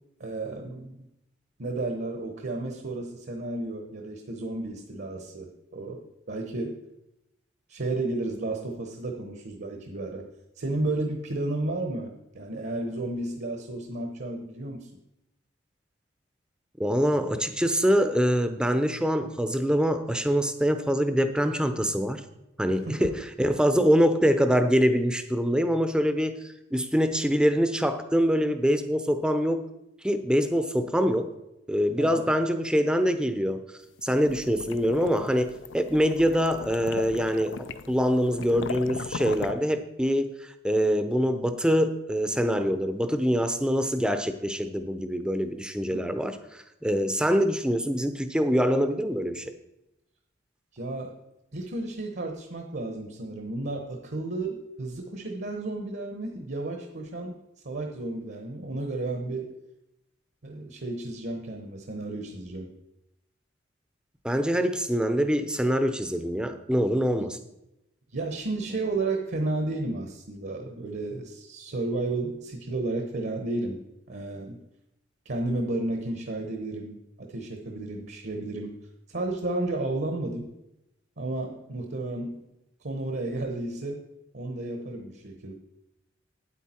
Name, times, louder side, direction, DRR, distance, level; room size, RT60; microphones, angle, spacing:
voice 1, 0.2-1.1 1.6-6.8 7.7-10.3 10.6-14.9 22.7-23.1 32.0-32.3 45.9-46.2 50.7-51.1 51.5-57.4 57.6-59.5 60.4-62.7 67.2-67.3 68.1-73.8 74.1-74.6 75.2-78.8 79.1-80.5 81.2-82.4 82.8-84.0 84.3-85.5, right 2 dB, 60° right, 3 dB, 1.0 m, -32 dB
voice 2, 16.8-22.2 22.6-29.7 30.0-31.3 31.7-33.6 34.0-49.5 64.2-67.4, equal, 5° right, 9 dB, 0.6 m, -24 dB
sound 1, 34.0-39.5, left 5 dB, 65° left, 0.5 m, -38 dB
8.9 x 8.5 x 4.4 m, 0.89 s
head